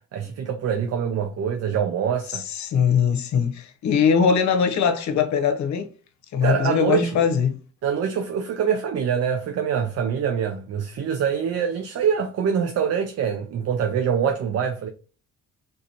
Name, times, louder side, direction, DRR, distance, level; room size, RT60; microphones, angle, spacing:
voice 1, 0.1-2.4 6.4-7.3 7.8-14.9, right 7 dB, 55° right, 0.5 m, -24 dB
voice 2, 2.3-5.9 6.3-7.6, left 6 dB, 65° left, 0.9 m, -21 dB
3.8 x 2.6 x 2.7 m
cardioid pair, 90°, 30 cm